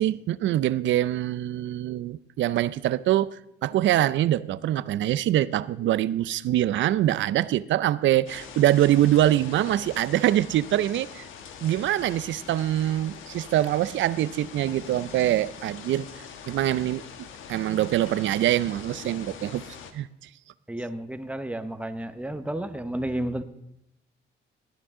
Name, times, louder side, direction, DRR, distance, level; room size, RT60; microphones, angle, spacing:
voice 1, 0.0-11.2 11.6-16.1 16.5-19.6 19.9-20.1, right 13 dB, 70° right, 0.5 m, -24 dB
sound 1, 8.3-19.9, left 7 dB, 85° left, 1.3 m, -43 dB
voice 2, 20.7-23.4, right 1 dB, 5° right, 1.0 m, -32 dB
17.5 x 10.5 x 3.7 m
cardioid pair, 90°, 20 cm